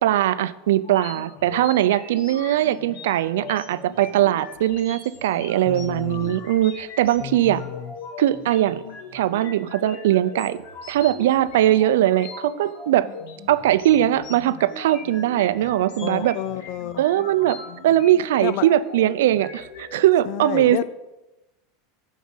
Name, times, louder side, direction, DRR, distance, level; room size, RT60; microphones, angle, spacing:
voice 1, 0.0-7.6 8.2-8.8 9.1-10.6 10.9-13.1 13.5-16.4 17.0-17.6 17.8-20.8, right 13 dB, 90° right, 15 dB, 0.5 m, -20 dB
sound 1, 0.8-20.0, left 4 dB, 75° left, 2.3 m, -40 dB
voice 2, 5.7-6.4 7.2-7.9 16.0-17.0 18.4-18.7 20.3-20.8, left 13 dB, 45° left, 17 dB, 0.4 m, -30 dB
9.6 x 6.3 x 5.6 m, 1.0 s
supercardioid pair, 165°, 0 cm